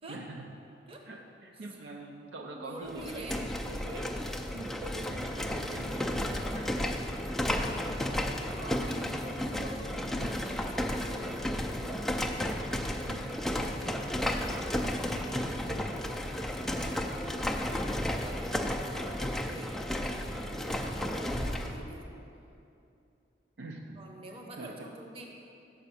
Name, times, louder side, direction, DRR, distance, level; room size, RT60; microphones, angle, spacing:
voice 1, 0.1-0.5 1.1-7.0 13.1-13.3 23.6-24.0 24.6-24.7, right 2 dB, 70° right, 2 dB, 0.5 m, -44 dB
voice 2, 2.5-3.4 7.6-11.9 13.3-16.2 16.5-22.0 24.0-25.3, right 1 dB, 30° right, 1 dB, 0.8 m, -47 dB
sound 1, 2.9-21.8, left 1 dB, ahead, 0.4 m, -33 dB
6.7 x 4.9 x 6.9 m, 2.7 s
head